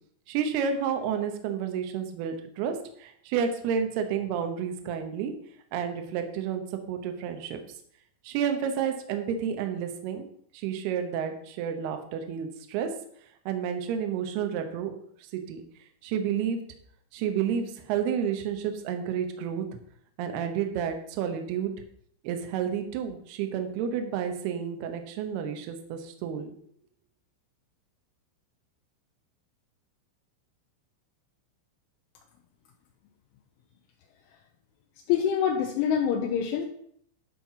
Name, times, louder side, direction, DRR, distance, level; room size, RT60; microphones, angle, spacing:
voice 1, 0.3-5.3 5.7-7.6 8.2-10.2 10.5-12.9 13.5-14.9 15.3-15.6 16.0-16.6 17.1-19.6 20.2-21.7 22.2-26.5, right 8 dB, 70° right, 6 dB, 2.5 m, -30 dB
voice 2, 35.1-36.7, left 8 dB, 80° left, 1 dB, 3.2 m, -25 dB
12.0 x 4.6 x 5.7 m, 0.66 s
omnidirectional pair, 5.8 m